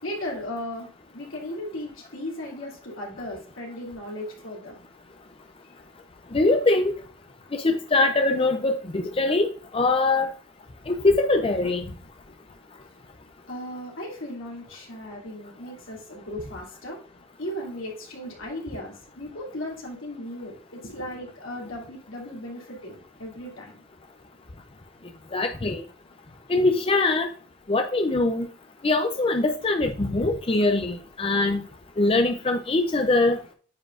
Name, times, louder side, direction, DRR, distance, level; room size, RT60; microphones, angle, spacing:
voice 1, 0.0-4.8 13.5-17.0 17.4-23.8, left 1 dB, 75° left, -1 dB, 2.7 m, -36 dB
voice 2, 6.3-6.9 7.5-9.5 9.7-10.3 10.9-11.8 25.3-25.8 26.5-27.3 27.7-28.5 28.8-31.6 32.0-33.4, left 2 dB, 25° left, 6 dB, 0.5 m, -22 dB
9.4 x 4.4 x 2.5 m, 0.42 s
head